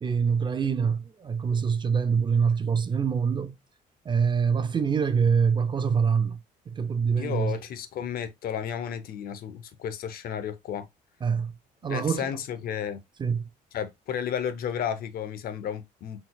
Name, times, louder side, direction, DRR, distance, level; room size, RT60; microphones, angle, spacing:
voice 1, 0.0-3.6 4.1-6.4 6.7-7.6 11.2-11.5 11.8-12.3 13.2-13.4, right 6 dB, 25° right, 0.5 m, -25 dB
voice 2, 7.1-10.9 11.9-13.0 13.7-16.2, left 8 dB, 60° left, 0.7 m, -33 dB
4.0 x 4.0 x 2.2 m
cardioid pair, 110°, 17 cm